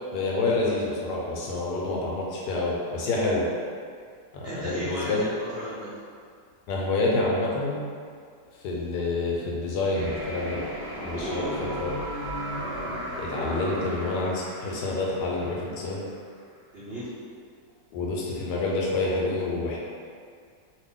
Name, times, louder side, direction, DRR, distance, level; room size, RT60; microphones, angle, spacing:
voice 1, 0.1-3.5 4.3-5.2 6.7-7.8 8.6-10.6 11.0-11.9 13.2-16.0 17.9-19.8, left 2 dB, 75° left, -3 dB, 1.1 m, -28 dB
voice 2, 4.4-5.9 11.1-11.6 16.7-17.1, equal, 80° right, -11 dB, 0.5 m, -34 dB
sound 1, 9.9-15.9, equal, 35° right, 0.5 m, -35 dB
2.8 x 2.5 x 3.6 m, 2.2 s
omnidirectional pair, 2.0 m